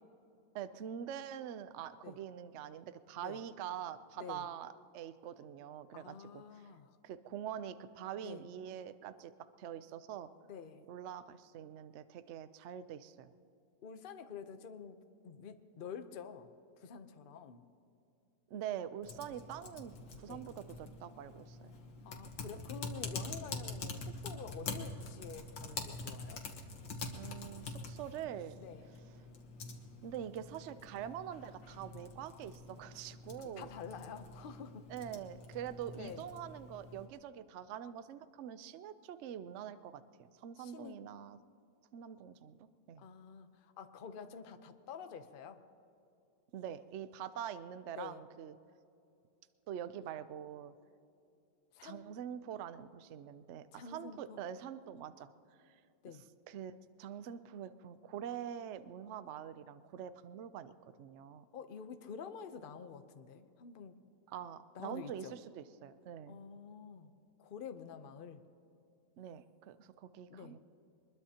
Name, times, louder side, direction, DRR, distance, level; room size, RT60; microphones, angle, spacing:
voice 1, 0.5-6.4 7.0-9.3 9.6-10.3 10.9-13.3 18.5-19.9 20.2-21.7 27.1-28.6 30.0-33.7 34.9-40.0 40.4-41.4 41.9-43.0 46.5-48.5 49.7-50.7 51.8-55.3 56.5-60.7 61.0-61.5 64.3-66.4 69.2-70.6, right 9 dB, 80° right, 12 dB, 0.6 m, -45 dB
voice 2, 5.9-7.0 8.2-8.4 10.5-10.8 13.8-15.0 15.2-17.6 20.3-20.5 22.0-26.4 28.6-28.9 33.4-34.9 35.9-36.2 40.6-41.0 43.0-45.6 47.9-48.2 51.7-52.0 53.7-54.4 56.0-56.2 61.5-63.9 64.7-65.3 66.3-67.1 67.4-68.4 70.3-70.6, left 6 dB, 50° left, 8 dB, 0.6 m, -48 dB
Typing, 19.0-37.1, left 3 dB, 90° left, 2.2 m, -46 dB
23.5 x 21.0 x 2.9 m, 2.7 s
omnidirectional pair, 2.0 m